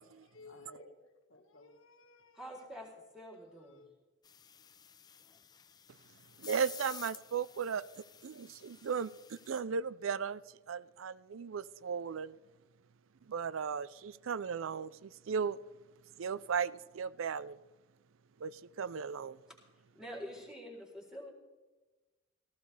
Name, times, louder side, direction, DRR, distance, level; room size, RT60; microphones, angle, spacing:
voice 1, 0.0-2.8 3.6-3.9, left 2 dB, 90° left, 1.6 m, -57 dB
voice 2, 2.3-2.9 3.1-3.9 19.9-21.3, equal, 5° right, 3.8 m, -46 dB
sound 1, 4.2-9.6, left 8 dB, 20° left, 0.4 m, -52 dB
voice 3, 6.4-7.8 8.2-10.4 10.7-12.3 13.3-15.6 16.2-17.6 18.4-19.4, right 6 dB, 75° right, 0.4 m, -36 dB
17.5 x 15.5 x 3.3 m
head